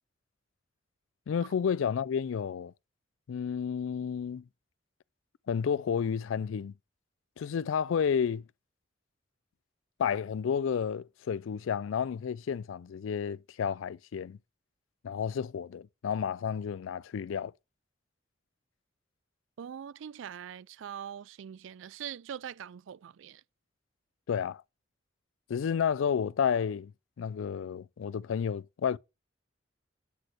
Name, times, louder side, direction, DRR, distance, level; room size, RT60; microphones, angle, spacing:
voice 1, 1.3-2.7 3.3-4.4 5.5-6.7 7.4-8.4 10.0-14.4 15.0-17.5 24.3-24.6 25.5-26.9 27.2-29.0, left 7 dB, 85° left, 0.4 m, -31 dB
voice 2, 19.6-23.4, right 8 dB, 75° right, 0.3 m, -42 dB
8.2 x 4.2 x 6.1 m
head